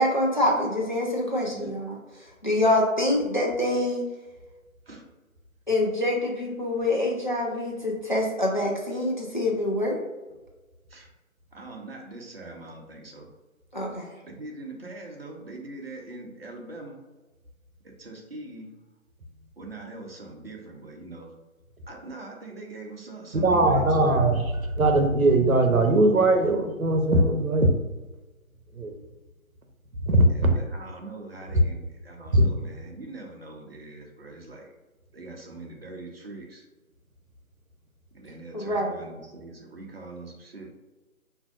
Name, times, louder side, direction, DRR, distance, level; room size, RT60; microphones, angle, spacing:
voice 1, 0.0-2.0 2.4-4.0 5.7-10.0 13.7-14.1 38.5-39.0, left 1 dB, 35° left, -1 dB, 0.4 m, -25 dB
voice 2, 11.5-13.3 14.2-17.0 17.8-18.7 19.6-21.3 21.9-24.4 30.3-34.7 35.1-36.6 38.1-40.7, right 2 dB, 45° right, 1 dB, 0.7 m, -42 dB
voice 3, 23.4-24.4 24.8-27.7 28.8-28.9 30.1-30.5 32.3-32.5, right 2 dB, 80° right, 4 dB, 0.8 m, -20 dB
4.9 x 2.6 x 2.4 m, 1.2 s
figure-of-eight pair, 160°, 41 cm